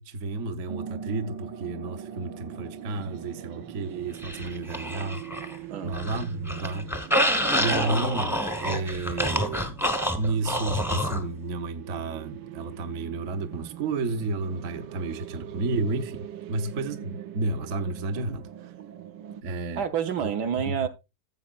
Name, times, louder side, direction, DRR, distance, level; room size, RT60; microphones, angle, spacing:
voice 1, 0.0-5.2 5.8-6.9 7.5-9.8 10.2-18.7 19.4-19.8 20.2-20.3 20.7-20.9, right 3 dB, 55° right, 1.0 m, -31 dB
sound 1, 0.7-19.4, right 10 dB, 90° right, 1.4 m, -42 dB
sound 2, 4.2-5.6 5.9-11.2, equal, ahead, 0.6 m, -27 dB
voice 2, 19.8-20.9, right 8 dB, 70° right, 1.4 m, -29 dB
14.5 x 7.8 x 2.4 m
omnidirectional pair, 1.9 m